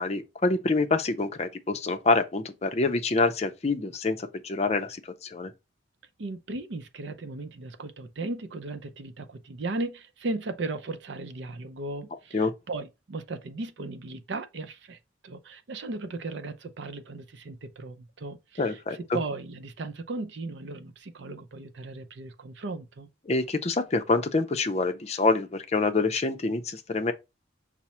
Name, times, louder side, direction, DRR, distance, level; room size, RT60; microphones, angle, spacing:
voice 1, 0.0-5.5 12.3-12.5 18.6-19.2 23.3-27.1, left 3 dB, 35° left, 0.5 m, -26 dB
voice 2, 6.2-15.0 15.2-23.1, right 3 dB, 65° right, 0.5 m, -36 dB
5.8 x 2.1 x 4.2 m
head